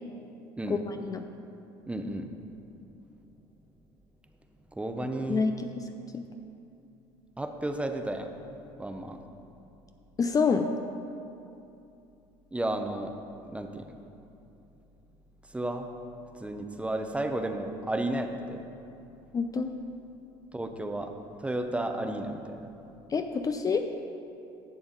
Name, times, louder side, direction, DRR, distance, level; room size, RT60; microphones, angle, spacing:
voice 1, 0.7-1.2 5.3-6.2 10.2-10.7 19.3-19.7 23.1-23.8, left 5 dB, 30° left, 6 dB, 0.5 m, -28 dB
voice 2, 1.9-2.3 4.7-5.4 7.4-8.3 8.8-9.2 12.5-13.1 13.4-14.0 15.5-15.9 16.3-18.6 20.5-21.1 21.4-22.7, right 1 dB, 10° right, 6 dB, 0.7 m, -33 dB
11.0 x 6.9 x 3.9 m, 2.8 s
hypercardioid pair, 80°, 13 cm